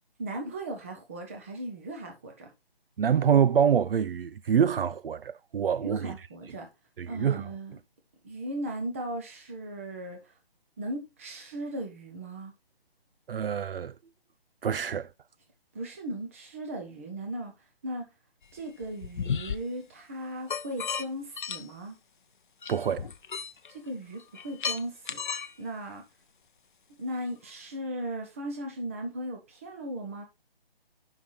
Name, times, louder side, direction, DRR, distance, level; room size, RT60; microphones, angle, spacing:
voice 1, 0.2-2.5 5.8-6.7 7.1-7.8 8.2-10.3 10.8-12.5 15.7-17.5 17.8-18.1 18.5-22.0 23.7-25.2 25.6-26.0 27.0-30.2, right 1 dB, 15° right, 0.8 m, -37 dB
voice 2, 3.0-6.1 7.0-7.4 13.3-13.9 14.6-15.1 22.7-23.1, right 8 dB, 65° right, 0.5 m, -25 dB
sound 1, 18.6-19.6 20.5-21.1 21.4-21.7 22.6-23.7 24.2-25.5, left 6 dB, 55° left, 0.6 m, -33 dB
5.7 x 5.7 x 4.7 m
hypercardioid pair, 170°, 30 cm